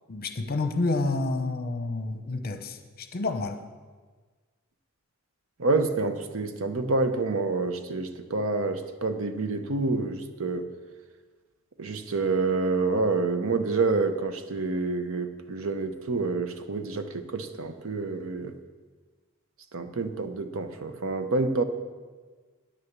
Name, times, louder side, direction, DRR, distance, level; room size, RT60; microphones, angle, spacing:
voice 1, 0.1-3.6, left 3 dB, 45° left, 8 dB, 0.8 m, -29 dB
voice 2, 5.6-10.7 11.8-18.6 19.7-21.6, right 3 dB, 65° right, 9 dB, 0.8 m, -28 dB
9.8 x 6.7 x 7.2 m, 1.4 s
head